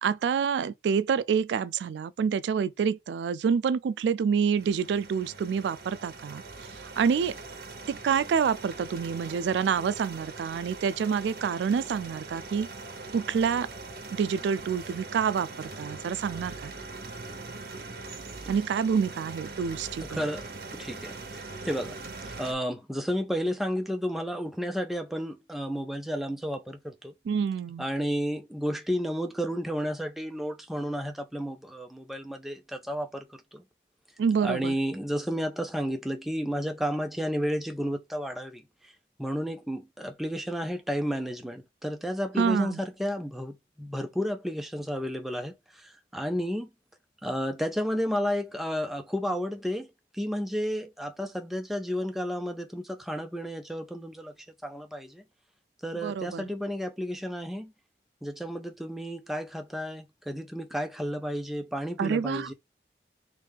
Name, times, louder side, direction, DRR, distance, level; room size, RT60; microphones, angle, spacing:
voice 1, 0.0-6.4 6.7-7.3 7.9-12.7 13.1-13.7 14.1-16.7 18.5-20.3 27.3-27.9 34.2-34.8 42.4-42.8 55.9-56.4 62.0-62.5, right 6 dB, 85° right, 0.3 m, -27 dB
sound 1, 4.6-22.5, right 3 dB, 55° right, 0.8 m, -42 dB
voice 2, 20.0-20.5 20.7-22.0 22.4-27.1 27.8-33.2 33.5-33.6 34.4-38.9 39.2-46.7 47.2-49.9 50.1-54.3 54.6-55.2 55.8-57.7 58.2-62.5, equal, ahead, 0.4 m, -32 dB
3.3 x 3.1 x 3.3 m
head